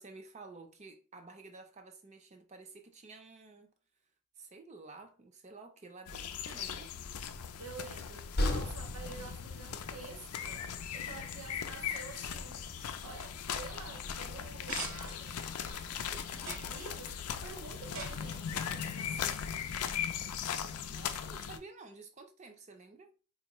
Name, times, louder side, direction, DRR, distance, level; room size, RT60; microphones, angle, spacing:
voice 1, 0.0-3.7 4.4-6.9 20.9-23.1, right 3 dB, 30° right, 0.5 m, -52 dB
sound 1, 6.1-21.6, left 8 dB, 85° left, 0.4 m, -39 dB
Train, 7.1-15.7, left 1 dB, 45° left, 0.7 m, -41 dB
voice 2, 7.6-12.6 13.0-19.4, right 4 dB, 85° right, 0.6 m, -49 dB
sound 2, 14.4-19.9, right 4 dB, 55° right, 0.8 m, -48 dB
4.3 x 2.4 x 3.0 m
head